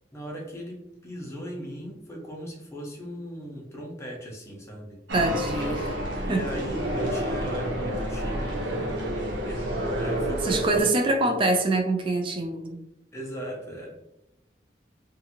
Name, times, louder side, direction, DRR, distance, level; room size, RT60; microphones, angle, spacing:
voice 1, 0.1-5.0 6.2-8.7 9.4-11.4 13.1-14.0, equal, 15° left, -2 dB, 0.7 m, -38 dB
voice 2, 5.1-6.0 6.3-6.4 10.4-12.8, right 2 dB, 30° right, 4 dB, 0.3 m, -25 dB
sound 1, 5.1-10.8, equal, 85° right, 0.7 m, -29 dB
2.6 x 2.4 x 2.8 m, 0.87 s
head